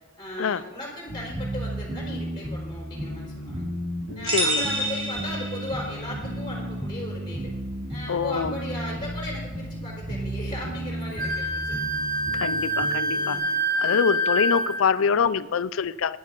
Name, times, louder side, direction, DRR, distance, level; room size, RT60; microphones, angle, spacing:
voice 1, 0.2-3.7 4.1-7.5 7.9-11.8 13.1-13.6, left 1 dB, 20° left, -3 dB, 4.1 m, -37 dB
sound 1, 1.1-13.3, equal, 65° right, 3.6 m, -34 dB
sound 2, 4.2-6.1, right 1 dB, 25° right, 2.5 m, -28 dB
voice 2, 4.3-4.6 8.1-8.5 12.3-13.4 13.8-16.2, left 6 dB, 85° left, 17 dB, 0.5 m, -25 dB
Wind instrument woodwind instrument, 11.2-14.9, right 1 dB, 45° right, 1.2 m, -26 dB
11.5 x 10.5 x 5.4 m, 1.2 s
head